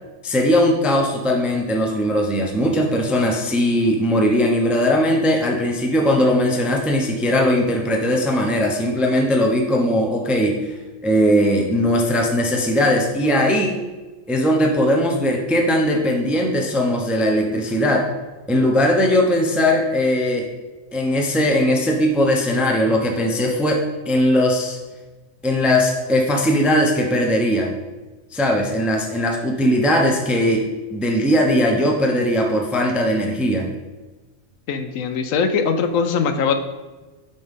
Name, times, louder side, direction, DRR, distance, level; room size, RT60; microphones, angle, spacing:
voice 1, 0.2-10.7 11.0-13.8 14.3-18.1 18.5-20.5 20.9-24.8 25.4-27.7 28.3-30.6 30.9-33.7, equal, ahead, 1 dB, 0.5 m, -19 dB
voice 2, 34.7-36.5, left 5 dB, 75° left, 9 dB, 1.0 m, -21 dB
10.0 x 4.3 x 3.6 m, 1.2 s
omnidirectional pair, 1.4 m